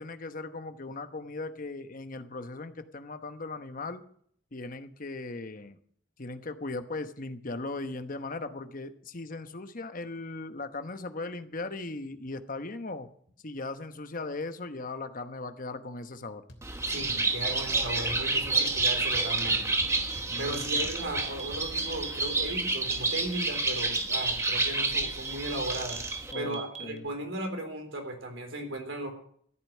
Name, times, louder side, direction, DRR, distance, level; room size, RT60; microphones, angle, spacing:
voice 1, 0.0-4.0 4.5-5.8 6.2-13.1 13.4-16.4 20.3-20.9 26.3-27.1, left 3 dB, 45° left, 9 dB, 1.0 m, -38 dB
sound 1, 16.5-16.9 17.1-17.5 17.8-17.9 18.1-21.6, equal, 65° left, 3.2 m, -47 dB
Bird, 16.6-26.3, right 3 dB, 15° right, 1.2 m, -29 dB
voice 2, 16.9-19.8 20.4-26.0 26.3-29.1, right 1 dB, 85° right, 4 dB, 3.6 m, -36 dB
sound 2, 18.6-27.0, right 7 dB, 35° right, 1.4 m, -40 dB
14.0 x 9.0 x 7.3 m, 0.62 s
head